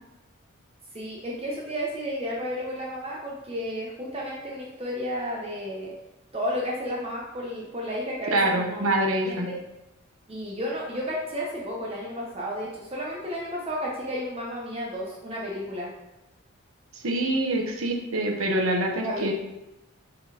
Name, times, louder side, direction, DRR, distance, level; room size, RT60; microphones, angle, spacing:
voice 1, 0.9-5.9 6.3-9.6 10.3-15.9 19.0-19.3, equal, 25° right, -3 dB, 0.8 m, -32 dB
voice 2, 8.3-9.5 16.9-19.3, right 1 dB, 75° right, 2 dB, 1.0 m, -25 dB
5.9 x 3.9 x 4.9 m, 0.96 s
head